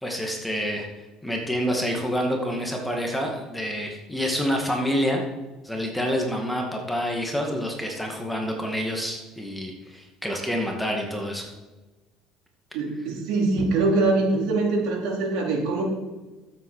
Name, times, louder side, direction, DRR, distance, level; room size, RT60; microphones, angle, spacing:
voice 1, 0.0-0.9 1.2-5.2 5.6-11.5 13.6-13.7, equal, 5° left, 1 dB, 2.2 m, -27 dB
voice 2, 12.7-15.8, right 3 dB, 75° right, -2 dB, 4.3 m, -23 dB
12.5 x 8.2 x 6.6 m, 1.2 s
cardioid pair, 115°, 0 cm